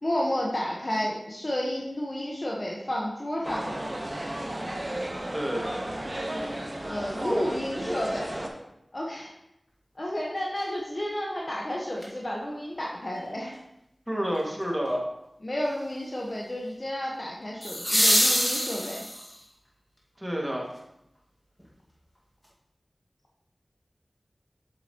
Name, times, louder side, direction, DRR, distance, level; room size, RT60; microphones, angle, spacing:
voice 1, 0.0-3.7 6.8-8.3 8.9-9.3 10.0-13.6 15.4-19.0, left 1 dB, 45° left, -3 dB, 1.2 m, -31 dB
sound 1, 3.4-8.5, right 1 dB, 40° right, 1.3 m, -33 dB
voice 2, 5.3-5.8 14.1-15.0 20.2-20.7, equal, 10° right, -2 dB, 2.1 m, -29 dB
sound 2, 12.0-12.1 17.6-19.4 21.6-21.7, equal, 10° left, 1.9 m, -24 dB
7.9 x 7.5 x 3.0 m, 0.85 s
wide cardioid pair, 40°, 0 cm